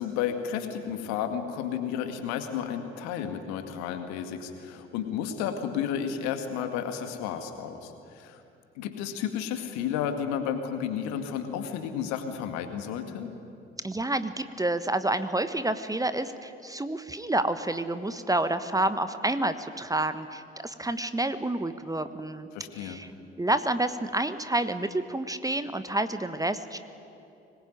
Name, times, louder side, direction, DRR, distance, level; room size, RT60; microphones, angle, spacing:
voice 1, 0.0-8.4 8.8-13.3 22.5-23.0, left 8 dB, 65° left, 7 dB, 2.2 m, -32 dB
voice 2, 13.8-22.5 22.7-23.1 23.4-26.8, right 2 dB, 10° right, 11 dB, 1.2 m, -29 dB
24.5 x 20.5 x 9.3 m, 2.7 s
figure-of-eight pair, 50°, 30 cm